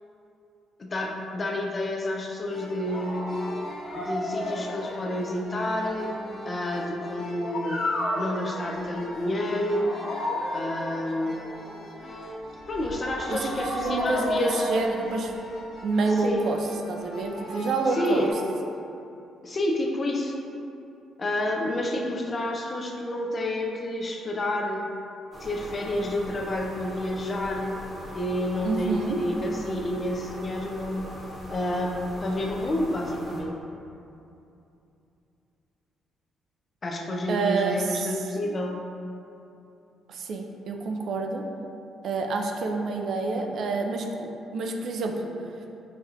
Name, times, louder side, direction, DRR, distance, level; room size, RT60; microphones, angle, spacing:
voice 1, 0.8-3.2 3.9-6.1 6.4-7.8 8.2-10.0 10.5-11.4 12.7-14.7 16.2-16.5 18.0-18.3 19.4-20.3 21.2-24.9 25.4-27.8 28.1-31.1 31.5-33.5 36.8-38.8, left 1 dB, 35° left, 0 dB, 0.5 m, -29 dB
sound 1, 2.5-18.3, left 1 dB, 85° left, 1.2 m, -34 dB
voice 2, 13.3-15.4 15.8-16.6 16.9-18.3 28.6-29.2 37.3-38.6 40.1-41.4 42.0-45.3, right 3 dB, 65° right, 3 dB, 0.3 m, -28 dB
sound 2, 25.3-33.4, equal, ahead, 1.0 m, -40 dB
5.1 x 2.3 x 2.8 m, 2.8 s
cardioid pair, 90°, 0 cm